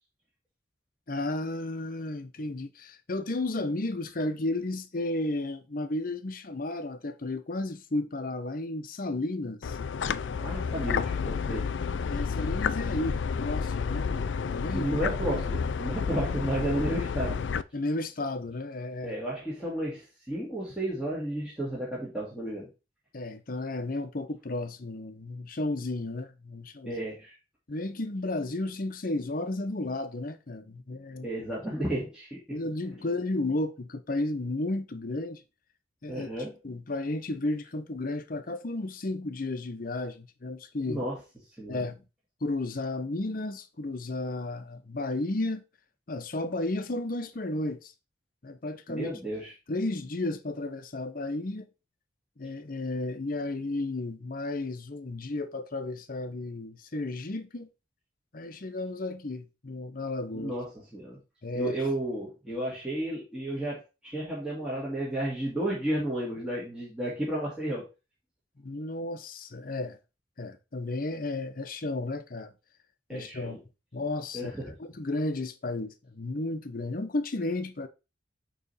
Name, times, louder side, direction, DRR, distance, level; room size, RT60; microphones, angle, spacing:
voice 1, 1.1-9.8 12.1-15.0 17.7-19.2 23.1-27.0 27.7-31.3 32.5-35.4 36.0-36.3 36.6-41.0 41.7-42.0 42.4-45.6 46.1-47.9 48.4-49.1 49.7-51.7 52.4-57.7 58.3-60.5 61.4-61.8 68.6-70.0 70.4-72.5 73.1-73.6 73.9-77.9, left 2 dB, 50° left, 0.8 m, -33 dB
sound 1, 9.6-17.6, left 6 dB, 80° left, 0.4 m, -30 dB
voice 2, 10.4-11.7 14.7-17.4 19.0-22.7 26.8-27.3 31.2-33.1 36.1-36.6 40.9-41.1 41.6-41.9 48.9-49.5 60.3-61.2 61.5-67.9 73.1-73.6 74.3-74.7, right 1 dB, 5° right, 1.7 m, -33 dB
8.7 x 3.2 x 4.1 m
head